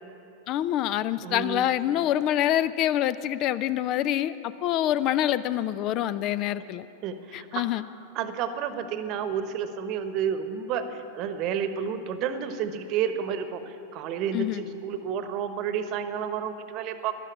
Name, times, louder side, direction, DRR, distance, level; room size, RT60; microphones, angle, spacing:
voice 1, 0.5-6.8 7.3-7.8 14.3-14.6, left 12 dB, 40° left, 16 dB, 0.4 m, -26 dB
voice 2, 1.2-1.7 7.0-7.7 8.1-17.1, right 7 dB, 40° right, 10 dB, 1.0 m, -31 dB
13.5 x 11.5 x 8.3 m, 2.8 s
figure-of-eight pair, 90°, 0 cm